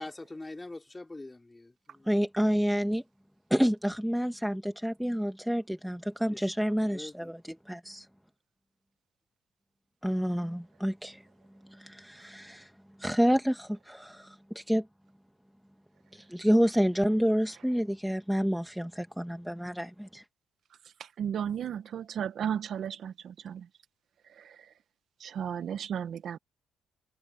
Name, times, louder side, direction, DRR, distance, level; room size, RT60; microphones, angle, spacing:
voice 1, 0.0-2.1 6.3-6.5 6.9-7.3, left 2 dB, 15° left, 4.1 m, -44 dB
voice 2, 2.1-3.0 3.5-8.1 10.0-11.2 11.7-12.7 13.0-14.9 16.1-20.2, equal, ahead, 1.2 m, -29 dB
voice 3, 21.0-23.7 24.3-24.7 25.2-26.4, right 8 dB, 65° right, 1.1 m, -35 dB
cardioid pair, 90°, 0 cm